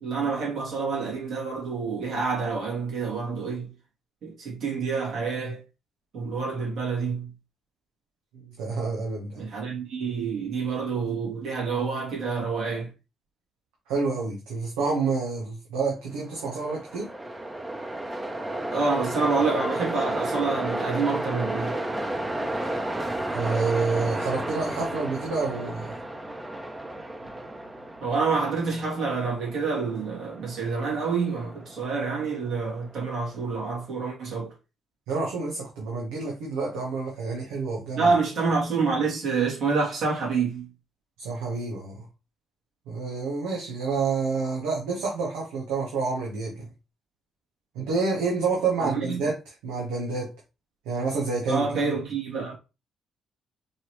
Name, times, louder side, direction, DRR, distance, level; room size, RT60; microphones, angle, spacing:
voice 1, 0.0-3.7 4.2-5.6 6.1-7.3 9.3-12.9 18.7-21.8 28.0-34.5 38.0-40.7 48.8-49.3 51.5-52.5, right 4 dB, 70° right, 2.6 m, -27 dB
voice 2, 8.4-9.4 13.9-17.1 22.6-22.7 23.3-25.9 35.1-38.1 41.2-42.0 42.9-46.7 47.7-49.3 49.6-50.3 50.9-51.9, right 4 dB, 90° right, 1.0 m, -28 dB
Train, 16.2-33.4, right 1 dB, 20° right, 0.9 m, -33 dB
4.6 x 3.2 x 3.1 m
supercardioid pair, 55°, 0 cm